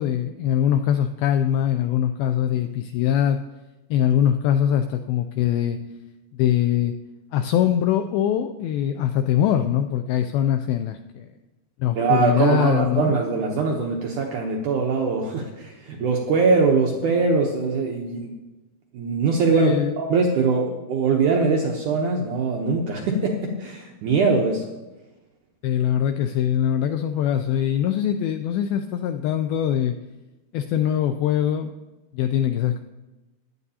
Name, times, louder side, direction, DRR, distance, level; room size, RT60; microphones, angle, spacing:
voice 1, 0.0-3.4 3.9-5.8 6.4-7.0 7.3-11.3 11.8-13.1 19.5-19.9 25.6-30.0 30.5-31.7 32.1-32.8, left 10 dB, 85° left, 7 dB, 2.1 m, -22 dB
voice 2, 12.0-18.3 18.9-24.6, right 4 dB, 75° right, 0 dB, 1.8 m, -22 dB
16.5 x 10.5 x 2.8 m, 1.1 s
omnidirectional pair, 4.7 m